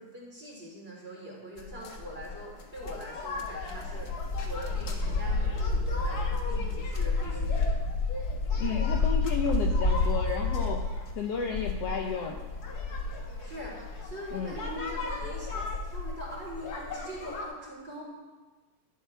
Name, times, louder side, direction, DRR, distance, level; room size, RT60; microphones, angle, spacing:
voice 1, 0.0-4.1 4.4-7.8 13.4-18.1, equal, 15° right, -4 dB, 3.5 m, -42 dB
sound 1, 1.6-17.4, left 3 dB, 65° left, 0.9 m, -31 dB
voice 2, 8.6-10.9 11.2-12.4 14.3-14.5, left 6 dB, 80° left, 3 dB, 1.4 m, -32 dB
16.5 x 11.5 x 3.4 m, 1.2 s
omnidirectional pair, 3.9 m